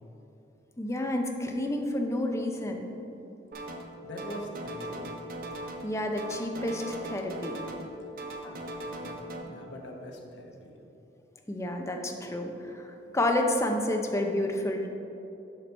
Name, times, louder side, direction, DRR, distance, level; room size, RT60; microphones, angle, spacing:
voice 1, 0.8-2.9 5.8-7.6 8.4-8.6 11.5-12.9 13.1-14.9, left 1 dB, 15° left, 3 dB, 0.6 m, -30 dB
sound 1, 3.5-3.9 4.2-5.9 6.2-7.9 8.2-9.4, right 1 dB, 50° right, 0.6 m, -39 dB
voice 2, 4.0-5.2 9.0-10.7, equal, 80° left, 1 dB, 1.0 m, -42 dB
6.7 x 5.9 x 4.4 m, 2.9 s
head